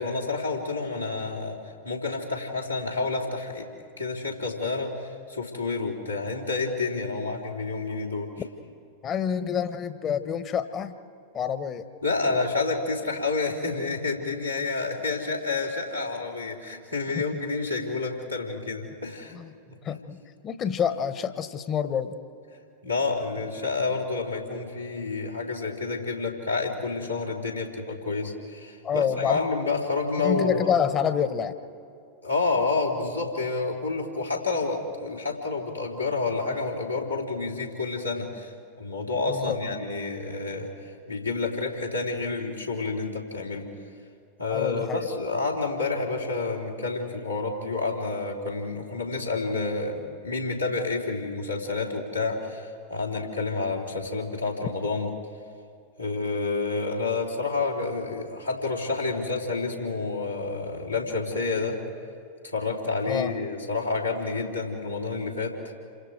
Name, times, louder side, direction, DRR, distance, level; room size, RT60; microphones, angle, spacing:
voice 1, 0.0-1.6 1.8-3.7 4.0-8.3 12.0-19.4 19.7-19.8 22.8-30.7 32.2-43.7 44.4-55.1 56.0-61.8 62.4-65.6, left 3 dB, 90° left, -4 dB, 3.5 m, -29 dB
voice 2, 9.0-11.0 11.3-11.8 17.1-17.2 19.3-19.5 19.8-20.2 20.4-22.2 28.8-29.4 30.2-31.6 39.3-39.6 44.5-45.1 63.1-63.3, left 8 dB, 30° left, 12 dB, 1.2 m, -27 dB
28.5 x 25.5 x 4.8 m, 2.6 s
figure-of-eight pair, 90°, 0 cm